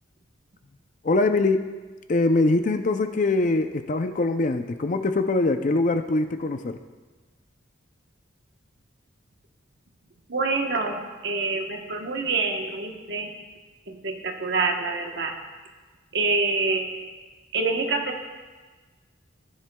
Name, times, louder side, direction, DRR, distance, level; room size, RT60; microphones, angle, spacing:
voice 1, 1.0-1.7 2.1-6.8, left 2 dB, 40° left, 8 dB, 0.5 m, -23 dB
voice 2, 10.3-13.3 13.9-15.4 16.1-17.1 17.5-18.2, right 3 dB, 60° right, 3 dB, 1.1 m, -26 dB
15.5 x 10.0 x 2.3 m, 1.3 s
head